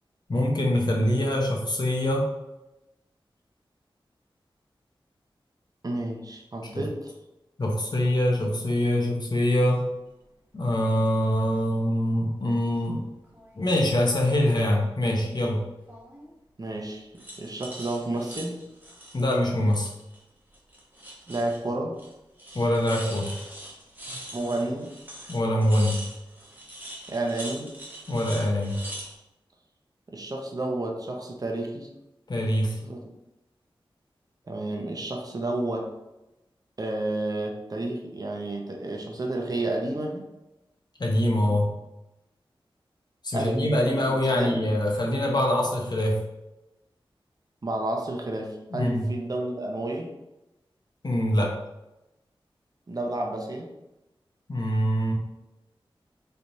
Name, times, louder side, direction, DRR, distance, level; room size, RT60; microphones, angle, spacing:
voice 1, 0.3-2.3 6.7-6.8 7.6-9.8 10.5-13.0 13.5-15.6 19.1-19.9 22.5-23.3 25.3-26.0 28.1-28.8 32.3-32.8 41.0-41.7 43.2-46.2 48.7-49.0 51.0-51.5 54.5-55.1, left 1 dB, 50° left, 0 dB, 0.9 m, -24 dB
voice 2, 5.8-7.1 16.6-18.6 21.3-22.0 24.3-24.9 27.1-27.7 30.1-31.9 32.8-33.0 34.5-35.9 36.8-40.3 43.3-43.8 44.1-44.6 47.6-50.1 52.9-53.7, right 2 dB, 40° right, 1 dB, 0.7 m, -31 dB
sound 1, 11.3-11.5 11.9-12.8 13.2-14.2 15.9-16.3 17.1-20.2 20.5-21.7 22.0-22.1 22.4-29.1, right 1 dB, 20° right, 1.0 m, -43 dB
4.2 x 3.3 x 2.7 m, 0.95 s
wide cardioid pair, 70°, 9 cm